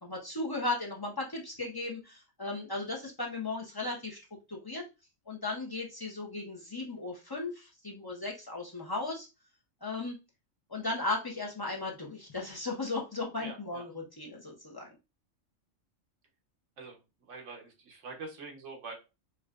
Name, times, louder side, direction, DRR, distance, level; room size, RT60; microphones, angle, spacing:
voice 1, 0.0-4.2 4.5-4.9 5.3-9.3 9.8-10.2 10.7-14.9, left 2 dB, 25° left, -1 dB, 0.5 m, -36 dB
voice 2, 13.4-13.8 16.8-18.9, right 3 dB, 70° right, 1 dB, 1.3 m, -45 dB
4.7 x 2.2 x 2.4 m, 0.27 s
omnidirectional pair, 1.3 m